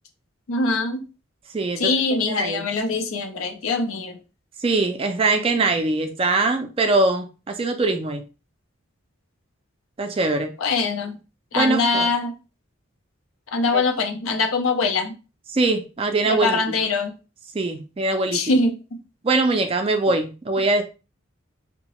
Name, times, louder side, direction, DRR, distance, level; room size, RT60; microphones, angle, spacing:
voice 1, 0.5-1.0 1.8-4.2 10.6-11.2 11.5-12.3 13.5-15.1 16.3-17.1 18.3-19.0, left 3 dB, 85° left, 0.6 m, -23 dB
voice 2, 2.3-2.7 4.6-8.2 10.0-10.5 11.5-12.1 15.5-16.6 17.5-18.4 19.2-20.8, right 3 dB, 25° right, 0.3 m, -22 dB
2.8 x 2.1 x 2.9 m
head